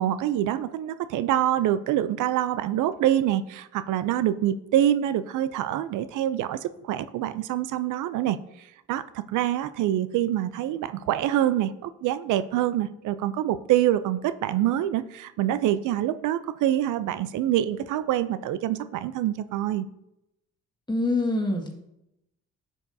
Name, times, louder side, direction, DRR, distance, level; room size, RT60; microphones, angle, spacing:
voice 1, 0.0-19.9, right 12 dB, 80° right, 13 dB, 0.5 m, -26 dB
voice 2, 20.9-21.7, left 2 dB, 15° left, 2 dB, 1.7 m, -25 dB
10.5 x 7.2 x 2.7 m, 0.85 s
cardioid pair, 90°, 30 cm